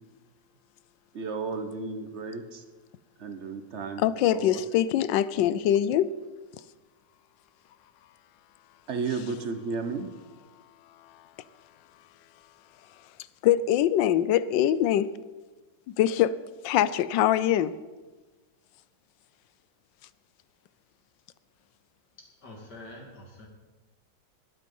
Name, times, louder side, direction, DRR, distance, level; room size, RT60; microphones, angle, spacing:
voice 1, 1.1-2.6 3.2-4.6 8.9-10.1, right 4 dB, 45° right, 1.1 m, -33 dB
voice 2, 4.0-6.1 13.4-15.1 15.9-16.4 16.6-17.8, left 11 dB, 90° left, 1.3 m, -23 dB
voice 3, 22.4-23.5, left 1 dB, 65° left, 3.1 m, -45 dB
20.0 x 8.5 x 5.4 m
omnidirectional pair, 1.9 m